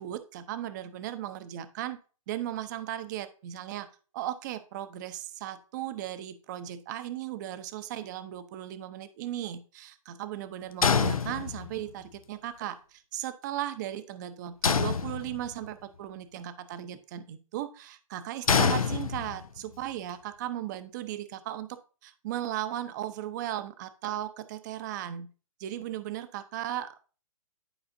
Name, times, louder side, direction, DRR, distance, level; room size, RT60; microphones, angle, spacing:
voice 1, 0.0-2.0 2.3-3.9 4.1-21.7 22.0-25.3 25.6-27.1, right 12 dB, 30° right, 11 dB, 0.7 m, -36 dB
sound 1, 10.8-11.9 14.6-15.7 18.5-19.6, left 5 dB, 85° left, 0.7 m, -26 dB
11.0 x 4.8 x 2.6 m, 0.37 s
hypercardioid pair, 140°, 18 cm